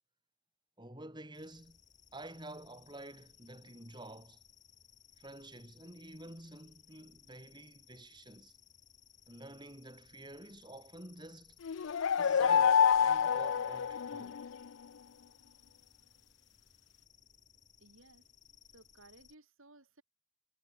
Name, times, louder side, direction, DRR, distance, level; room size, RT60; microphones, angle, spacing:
voice 1, 0.8-1.8 2.1-4.4 5.2-8.5 9.3-11.6 12.2-14.4, right 1 dB, 20° right, 5.9 m, -50 dB
sound 1, 1.3-19.4, left 8 dB, 35° left, 6.7 m, -63 dB
sound 2, 11.6-14.5, left 7 dB, 60° left, 0.4 m, -27 dB
voice 2, 17.8-18.2 18.7-20.0, right 2 dB, 65° right, 4.0 m, -59 dB
head